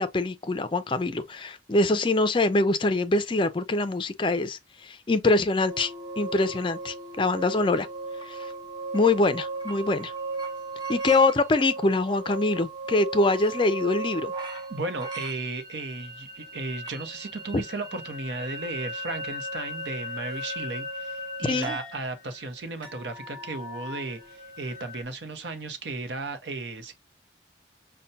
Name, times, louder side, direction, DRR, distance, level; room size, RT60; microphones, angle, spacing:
voice 1, 0.0-5.9 6.2-7.9 8.3-8.4 8.9-10.1 10.9-14.3 21.4-21.8, left 2 dB, 30° left, 0.4 m, -24 dB
sound 1, 5.7-25.0, right 2 dB, 25° right, 0.8 m, -37 dB
voice 2, 14.7-26.9, right 3 dB, 80° right, 0.8 m, -35 dB
5.5 x 2.2 x 2.6 m
head